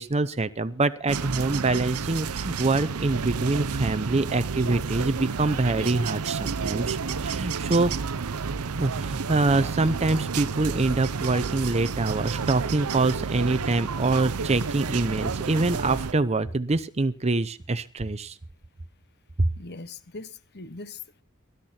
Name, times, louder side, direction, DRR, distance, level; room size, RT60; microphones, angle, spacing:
voice 1, 0.0-7.9 8.8-18.4 19.4-19.5, right 2 dB, 30° right, 12 dB, 0.7 m, -25 dB
sound 1, 1.1-16.1, right 5 dB, 80° right, 0.7 m, -30 dB
voice 2, 19.6-21.2, left 3 dB, 50° left, 13 dB, 1.3 m, -41 dB
20.0 x 12.0 x 4.4 m, 0.35 s
head